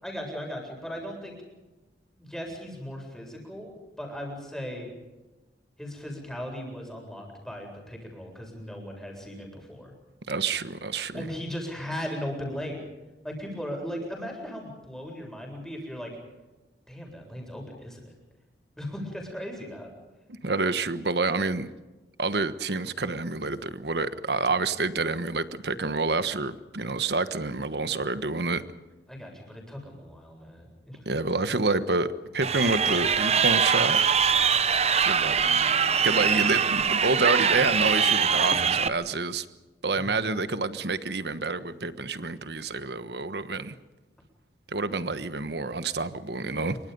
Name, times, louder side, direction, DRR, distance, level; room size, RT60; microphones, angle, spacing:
voice 1, 0.0-1.3 2.2-4.9 5.8-9.9 11.1-12.8 13.2-16.1 16.9-18.1 18.8-19.9 29.1-31.1 40.0-40.3, equal, 5° left, 0 dB, 7.8 m, -37 dB
voice 2, 10.3-11.3 20.4-21.7 22.2-28.6 31.0-34.0 34.9-35.4 36.0-39.5 39.8-43.7 44.7-46.8, right 3 dB, 70° right, 12 dB, 1.3 m, -28 dB
Crowd, 32.4-38.9, right 6 dB, 35° right, 0.9 m, -23 dB
27.0 x 24.5 x 5.5 m, 1.1 s
head